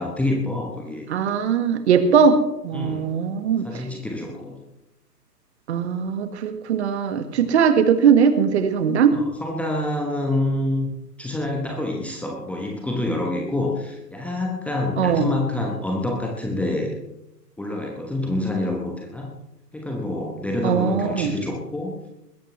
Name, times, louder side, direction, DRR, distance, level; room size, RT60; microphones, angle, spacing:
voice 1, 0.0-1.1 2.7-3.2 3.6-4.6 7.4-7.5 9.1-10.9 11.2-17.0 17.6-19.3 19.7-22.0, left 2 dB, 5° left, 0 dB, 1.1 m, -27 dB
voice 2, 1.1-2.4 2.6-3.8 5.7-9.2 15.0-15.3 20.6-21.3, right 7 dB, 40° right, 9 dB, 1.7 m, -20 dB
20.5 x 16.0 x 3.2 m, 0.86 s
figure-of-eight pair, 120°, 49 cm